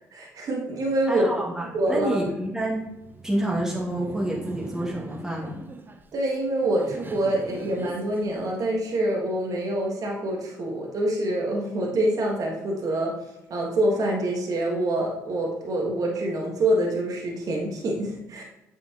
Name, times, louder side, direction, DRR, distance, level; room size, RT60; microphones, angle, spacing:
voice 1, 0.1-1.3 1.7-2.2 6.1-13.1 13.5-18.4, right 1 dB, 60° right, -1 dB, 1.3 m, -26 dB
voice 2, 1.1-2.9 3.2-5.6, right 1 dB, 10° right, -4 dB, 1.7 m, -28 dB
Laughter, 2.7-9.0, right 3 dB, 30° right, 0.6 m, -41 dB
7.8 x 4.3 x 2.8 m, 0.93 s
supercardioid pair, 55°, 7 cm